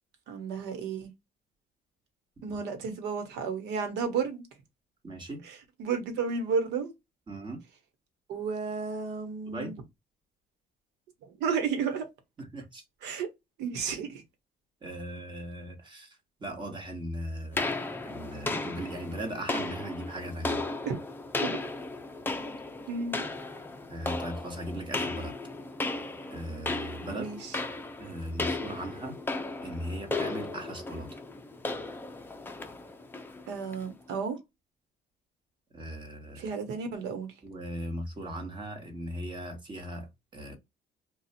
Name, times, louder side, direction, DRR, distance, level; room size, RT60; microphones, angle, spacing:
voice 1, 0.3-1.1 2.4-4.5 5.4-6.9 8.3-9.7 11.4-12.1 13.0-13.3 13.6-14.2 20.8-21.0 21.4-21.6 22.9-23.3 27.1-27.6 33.5-34.4 36.3-37.3, right 5 dB, 85° right, 1.1 m, -32 dB
voice 2, 5.0-5.5 7.3-7.6 9.5-9.7 12.4-12.8 14.8-17.6 18.0-20.6 23.9-25.3 26.3-27.3 28.0-29.2 29.6-31.2 35.7-36.5 37.4-40.6, right 1 dB, 25° right, 1.4 m, -38 dB
sound 1, 17.6-33.9, left 3 dB, 10° left, 0.5 m, -35 dB
2.5 x 2.3 x 4.1 m
cardioid pair, 110°, 17 cm